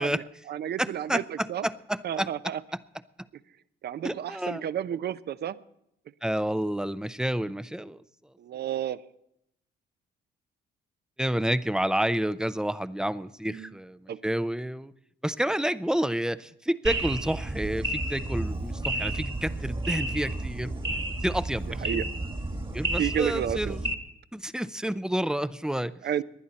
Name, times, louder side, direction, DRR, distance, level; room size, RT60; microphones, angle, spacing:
voice 1, 0.0-1.7 2.0-2.6 3.8-5.6 8.4-9.0 13.5-13.7 14.1-14.2 21.8-22.1 23.0-23.8 26.0-26.2, right 10 dB, 55° right, 16 dB, 0.6 m, -31 dB
voice 2, 0.8-2.5 4.0-4.6 6.2-8.0 11.2-14.9 15.2-20.7 21.2-22.0 22.7-23.8 24.3-25.9, right 1 dB, 5° right, 15 dB, 0.5 m, -29 dB
sound 1, 16.9-23.9, right 2 dB, 25° right, 1.5 m, -31 dB
19.5 x 11.0 x 4.2 m, 0.79 s
cardioid pair, 90°, 20 cm